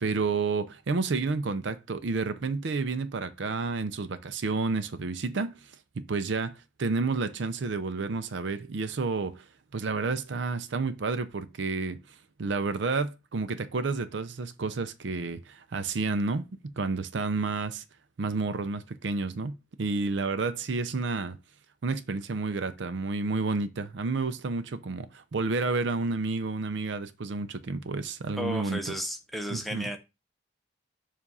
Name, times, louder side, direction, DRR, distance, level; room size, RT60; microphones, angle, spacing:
voice 1, 0.0-5.7 6.0-9.5 9.7-12.0 12.4-16.5 16.8-17.8 18.2-21.4 21.8-28.9 29.5-29.9, right 4 dB, 65° right, 0.5 m, -30 dB
voice 2, 28.4-30.0, equal, ahead, 0.7 m, -33 dB
7.2 x 2.5 x 5.3 m
head